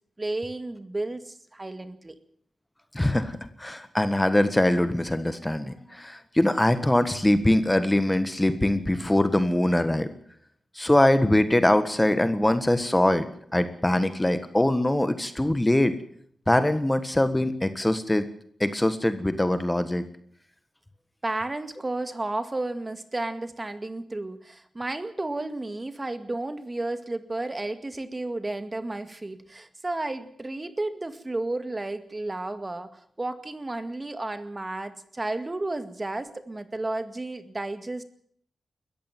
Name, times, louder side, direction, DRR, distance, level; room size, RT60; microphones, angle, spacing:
voice 1, 0.2-2.1 21.2-38.0, right 2 dB, 25° right, 11 dB, 2.1 m, -32 dB
voice 2, 2.9-10.1 10.7-15.9 16.5-18.2 18.6-20.0, left 1 dB, 15° left, 11 dB, 1.5 m, -23 dB
21.0 x 14.5 x 9.3 m, 0.62 s
cardioid pair, 75°, 0 cm